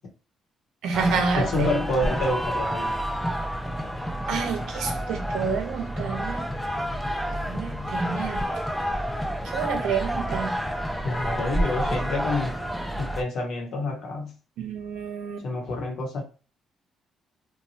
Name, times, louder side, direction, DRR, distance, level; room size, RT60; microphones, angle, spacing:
voice 1, 0.8-1.8 4.3-6.4 7.5-8.5 9.5-10.6 14.6-15.4, right 5 dB, 85° right, 0.6 m, -28 dB
sound 1, 0.9-13.2, equal, ahead, 0.4 m, -29 dB
voice 2, 1.4-3.0 11.0-12.6 12.9-14.3 15.4-16.2, left 2 dB, 70° left, 0.9 m, -28 dB
3.0 x 2.1 x 2.7 m
cardioid pair, 90°, 0 cm